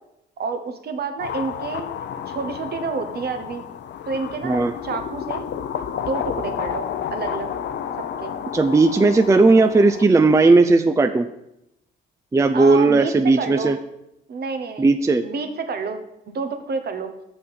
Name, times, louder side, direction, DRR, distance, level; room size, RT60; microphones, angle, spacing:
voice 1, 0.4-1.9 2.3-3.6 4.1-5.4 5.9-7.5 8.2-8.3 12.5-13.8 14.3-14.9 15.2-16.0 16.3-17.1, right 4 dB, 55° right, 8 dB, 1.1 m, -29 dB
sound 1, 1.2-10.0, left 8 dB, 65° left, 0.6 m, -31 dB
voice 2, 8.5-11.3 12.3-13.8 14.8-15.2, right 3 dB, 15° right, 8 dB, 0.4 m, -16 dB
6.2 x 5.6 x 6.8 m, 0.84 s
cardioid pair, 90°, 20 cm